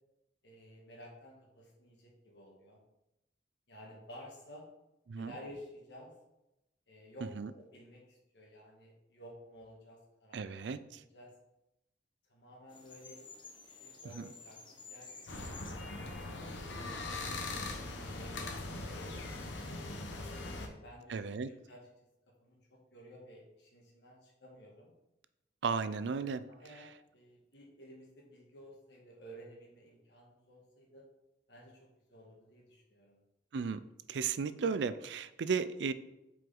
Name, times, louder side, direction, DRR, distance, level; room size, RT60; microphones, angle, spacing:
voice 1, 0.4-2.8 3.7-4.7 5.2-6.1 6.9-7.3 7.6-11.3 12.3-13.2 13.6-15.5 16.3-19.8 20.6-21.2 21.7-21.8 22.4-24.9 26.5-31.0 31.5-33.2, equal, 65° left, -2 dB, 1.9 m, -54 dB
voice 2, 10.3-11.0 14.1-14.3 21.1-21.5 25.6-26.4 33.5-33.8 34.1-35.9, right 5 dB, 75° right, 14 dB, 0.4 m, -34 dB
sound 1, 12.7-19.5, left 4 dB, 25° left, 0.9 m, -55 dB
sound 2, 15.3-20.7, left 2 dB, 85° left, 1.0 m, -41 dB
7.7 x 4.9 x 3.8 m, 0.92 s
head